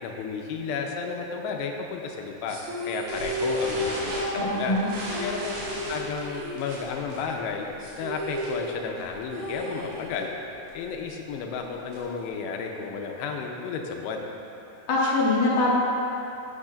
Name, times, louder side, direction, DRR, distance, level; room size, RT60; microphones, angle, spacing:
voice 1, 0.0-2.6 2.8-4.8 5.2-5.5 5.9-7.7 8.0-10.3 10.7-14.2, left 5 dB, 85° left, 2 dB, 2.8 m, -32 dB
sound 1, 2.5-7.1 7.4-7.5 7.8-10.5, equal, 60° right, 2.6 m, -33 dB
sound 2, 3.1-8.7 9.0-9.3 9.5-9.6 9.9-10.2 10.7-12.2, right 1 dB, 85° right, 4.4 m, -37 dB
voice 2, 4.4-4.9 14.9-15.8, left 2 dB, 60° left, -6 dB, 2.5 m, -23 dB
12.0 x 8.9 x 2.5 m, 2.9 s
omnidirectional pair, 4.9 m